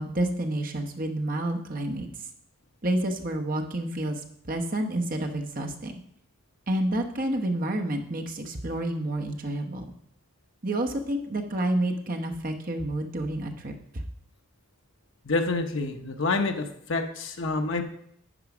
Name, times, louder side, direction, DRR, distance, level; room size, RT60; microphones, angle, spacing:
voice 1, 0.0-2.1 2.8-5.9 6.7-9.9 10.6-13.7, right 1 dB, 40° right, 3 dB, 1.0 m, -29 dB
voice 2, 15.2-17.8, left 3 dB, 65° left, 5 dB, 0.9 m, -27 dB
10.0 x 4.7 x 6.0 m, 0.71 s
head